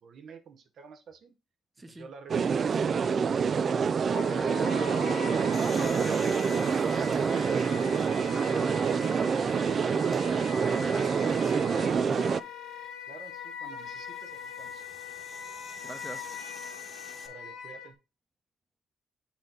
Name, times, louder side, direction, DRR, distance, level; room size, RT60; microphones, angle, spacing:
voice 1, 0.0-1.3 1.9-3.1 3.7-4.6 10.7-11.2 13.1-14.8 17.2-18.0, right 6 dB, 65° right, 0.8 m, -49 dB
voice 2, 1.8-2.1 5.1-10.0 10.6-12.3 15.8-16.3, right 2 dB, 20° right, 0.9 m, -45 dB
sound 1, 2.3-12.4, right 6 dB, 50° right, 0.4 m, -26 dB
Wind instrument woodwind instrument, 4.1-17.9, left 7 dB, 85° left, 1.2 m, -42 dB
sound 2, 5.5-8.4 9.0-9.1 10.0-10.2 12.4-17.3, left 3 dB, 30° left, 1.4 m, -50 dB
7.3 x 4.2 x 3.8 m
cardioid pair, 90°, 0 cm